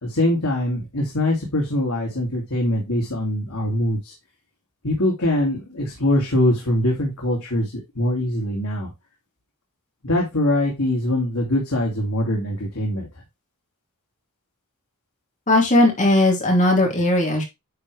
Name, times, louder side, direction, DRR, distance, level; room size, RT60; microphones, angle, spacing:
voice 1, 0.0-4.1 4.8-8.9 10.0-13.1, left 1 dB, 80° left, -2 dB, 2.5 m, -23 dB
voice 2, 15.5-17.4, left 1 dB, 35° left, 0 dB, 2.9 m, -17 dB
9.5 x 4.9 x 3.3 m, 0.22 s
head